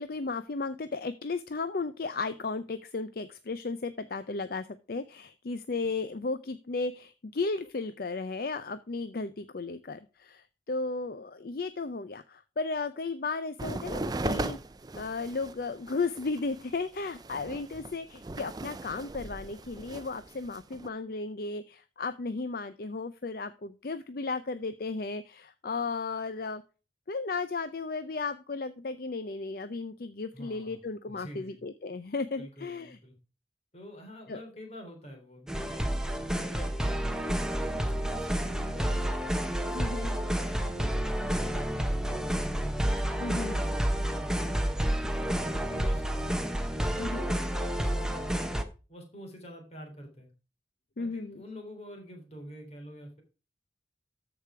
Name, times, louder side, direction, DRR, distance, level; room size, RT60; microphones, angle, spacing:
voice 1, 0.0-14.6 15.0-26.6 27.1-33.0 34.3-34.4 39.7-40.1 43.2-43.6 47.0-47.3 51.0-51.4, left 3 dB, 55° left, 12 dB, 0.5 m, -35 dB
sound 1, 13.6-20.9, right 2 dB, 20° right, 0.5 m, -38 dB
voice 2, 30.3-30.8 31.1-31.6 32.4-33.1 33.7-39.1 39.6-42.7 43.2-44.7 45.1-47.2 47.7-50.3 51.0-53.2, equal, 35° left, 2 dB, 3.3 m, -46 dB
sound 2, 35.5-48.6, equal, 5° right, 0.8 m, -30 dB
13.5 x 4.9 x 4.9 m, 0.34 s
head